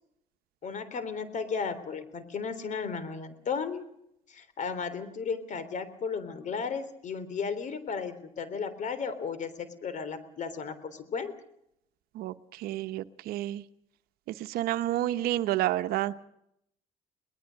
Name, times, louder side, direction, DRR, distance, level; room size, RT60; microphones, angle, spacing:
voice 1, 0.6-3.8 4.3-11.3, left 5 dB, 50° left, 13 dB, 3.5 m, -34 dB
voice 2, 12.1-13.6 14.3-16.2, right 14 dB, 75° right, 12 dB, 1.0 m, -30 dB
22.5 x 19.5 x 6.5 m, 0.76 s
supercardioid pair, 80°, 16 cm